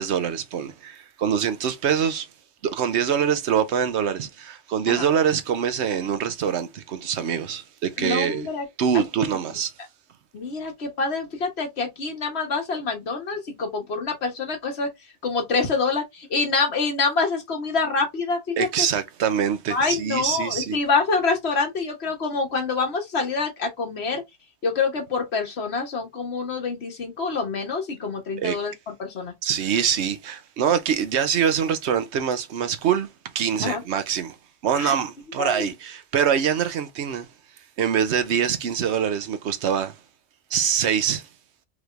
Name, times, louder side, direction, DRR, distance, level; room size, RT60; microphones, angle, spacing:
voice 1, 0.0-2.3 2.6-8.5 8.8-9.7 18.6-20.8 28.4-28.6 29.4-33.1 33.3-34.4 34.6-37.3 37.8-40.0 40.5-41.3, right 8 dB, 90° right, 1.0 m, -24 dB
voice 2, 8.0-8.6 8.9-9.0 10.3-14.9 15.2-18.9 19.7-24.2 24.6-28.7 29.0-29.3 33.6-33.8 34.8-35.0 35.4-35.7, left 4 dB, 75° left, 1.5 m, -26 dB
4.9 x 3.2 x 2.5 m
omnidirectional pair, 1.1 m